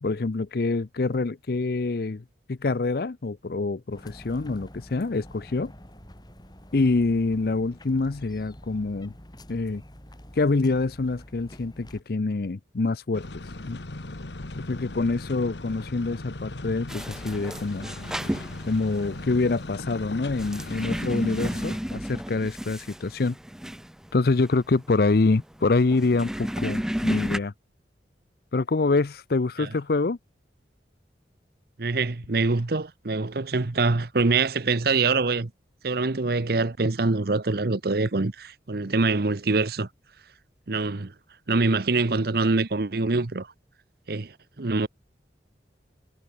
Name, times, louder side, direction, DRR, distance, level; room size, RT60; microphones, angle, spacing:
voice 1, 0.0-5.7 6.7-9.1 9.5-9.8 10.3-13.8 14.6-17.9 18.7-23.4 24.1-27.5 28.5-30.2, left 3 dB, 55° left, 0.6 m, -26 dB
sound 1, 3.9-12.0, equal, 25° left, 4.6 m, -47 dB
sound 2, 13.1-21.8, left 2 dB, 75° left, 1.6 m, -38 dB
sound 3, 16.9-27.4, equal, 5° right, 0.5 m, -33 dB
voice 2, 31.8-35.5 35.8-39.9 40.7-41.1 41.5-43.5 44.1-44.9, right 3 dB, 55° right, 0.9 m, -24 dB
head